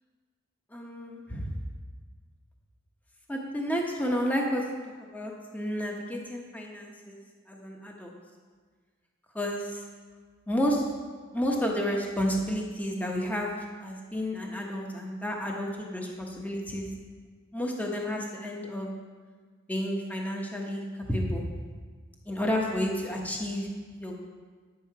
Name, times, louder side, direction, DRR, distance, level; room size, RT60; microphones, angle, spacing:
voice 1, 0.7-1.5 3.3-4.6 5.1-7.2 7.5-8.1 9.3-9.8 10.5-10.8 11.3-16.9 17.5-18.9 19.7-21.4 22.3-23.7 24.0-24.2, equal, 10° left, 0 dB, 1.0 m, -31 dB
10.0 x 7.6 x 4.7 m, 1.5 s
head